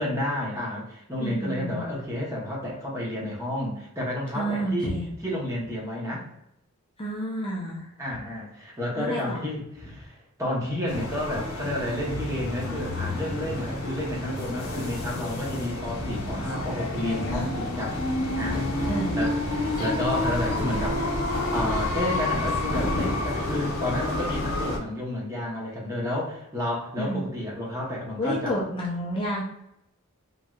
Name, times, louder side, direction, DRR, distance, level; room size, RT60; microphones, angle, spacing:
voice 1, 0.0-5.0 5.2-6.3 8.0-18.1 18.3-18.6 19.1-21.0 21.5-28.6, left 1 dB, 15° right, -4 dB, 0.8 m, -31 dB
voice 2, 1.2-1.9 4.3-5.1 7.0-7.9 9.0-9.4 18.9-19.2 27.0-27.3 28.2-29.4, equal, 25° left, -4 dB, 0.5 m, -30 dB
sound 1, 10.9-24.8, left 2 dB, 70° left, 0.7 m, -29 dB
3.0 x 2.7 x 2.3 m, 0.81 s
head